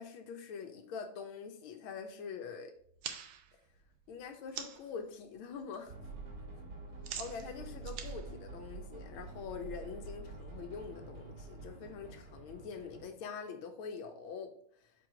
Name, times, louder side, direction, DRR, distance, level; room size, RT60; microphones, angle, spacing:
voice 1, 0.0-2.7 4.1-5.9 7.2-14.5 14.8-14.9, left 6 dB, 90° left, 6 dB, 1.7 m, -44 dB
sound 1, 2.8-5.0 5.3-5.8 6.0-9.3, right 8 dB, 80° right, 1.5 m, -46 dB
sound 2, 5.9-13.0, right 3 dB, 45° right, 2.4 m, -47 dB
4.7 x 4.6 x 4.9 m, 0.63 s
omnidirectional pair, 2.2 m